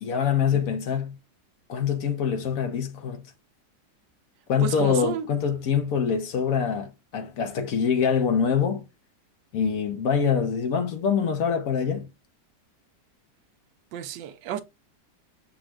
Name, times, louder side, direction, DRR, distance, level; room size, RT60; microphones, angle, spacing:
voice 1, 0.0-1.2 1.7-3.2 4.5-8.8 9.5-12.1, left 7 dB, 60° left, 1.0 m, -25 dB
voice 2, 4.6-5.3 13.9-14.6, right 9 dB, 80° right, 1.2 m, -31 dB
6.1 x 2.3 x 3.1 m
omnidirectional pair, 1.9 m